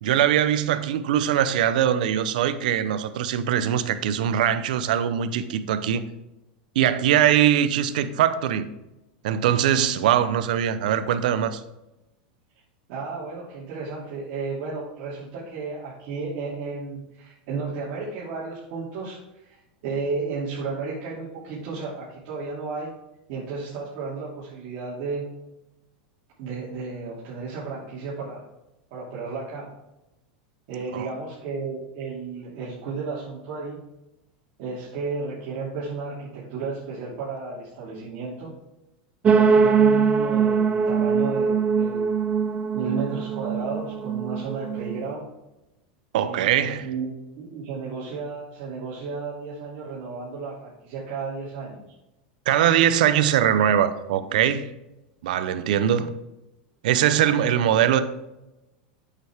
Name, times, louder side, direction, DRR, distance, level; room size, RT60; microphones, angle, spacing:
voice 1, 0.0-6.0 6.7-8.7 9.2-11.6 30.9-31.1 46.1-46.9 52.5-54.7 55.2-56.1 56.8-58.0, right 10 dB, 75° right, 0.7 m, -21 dB
voice 2, 12.9-22.9 23.3-25.3 26.4-28.4 28.9-29.7 30.7-33.8 34.6-38.6 39.3-42.0 42.7-45.3 46.2-47.1 47.4-51.8, right 4 dB, 60° right, 2.8 m, -33 dB
sound 1, 39.2-45.1, right 6 dB, 30° right, 0.5 m, -22 dB
9.0 x 6.8 x 3.6 m
supercardioid pair, 115°, 4 cm